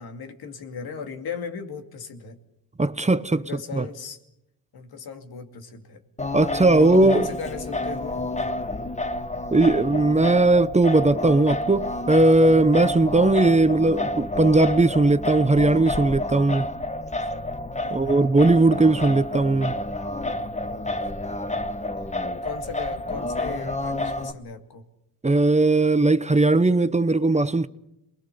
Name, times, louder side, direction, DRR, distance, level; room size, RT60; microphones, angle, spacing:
voice 1, 0.0-2.4 3.4-4.2 4.7-6.0 6.8-8.3 17.8-18.3 22.4-24.8, left 5 dB, 80° left, 2.6 m, -37 dB
voice 2, 2.8-3.9 6.3-7.3 9.5-16.7 17.9-19.8 25.2-27.7, right 2 dB, 20° right, 0.9 m, -19 dB
Singing, 6.2-24.3, left 1 dB, 20° left, 1.3 m, -29 dB
27.5 x 21.0 x 6.9 m
cardioid pair, 70°, 37 cm